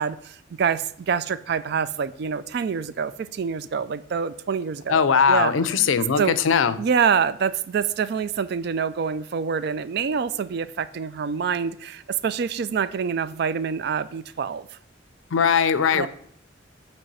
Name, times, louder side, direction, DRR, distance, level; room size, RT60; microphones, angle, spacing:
voice 1, 0.0-5.0 5.3-5.5 6.2-6.4 6.8-14.7 15.9-16.1, right 6 dB, 55° right, 0.3 m, -26 dB
voice 2, 4.9-6.8 15.3-16.1, left 6 dB, 80° left, 0.5 m, -20 dB
8.2 x 3.3 x 5.4 m
head